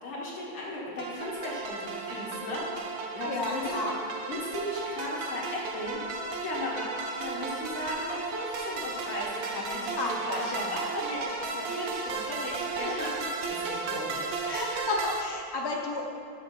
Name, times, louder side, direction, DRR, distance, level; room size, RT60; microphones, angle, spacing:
voice 1, 0.0-3.9 4.3-6.0 6.4-9.9 10.3-14.5, left 1 dB, 70° left, -4 dB, 2.5 m, -36 dB
sound 1, 1.0-15.2, right 4 dB, 80° right, 1.6 m, -35 dB
voice 2, 3.2-3.9 10.0-10.5 12.1-12.3 12.8-13.0 14.4-16.0, left 2 dB, 25° left, -1 dB, 0.5 m, -32 dB
7.5 x 6.5 x 6.0 m, 2.4 s
omnidirectional pair, 2.2 m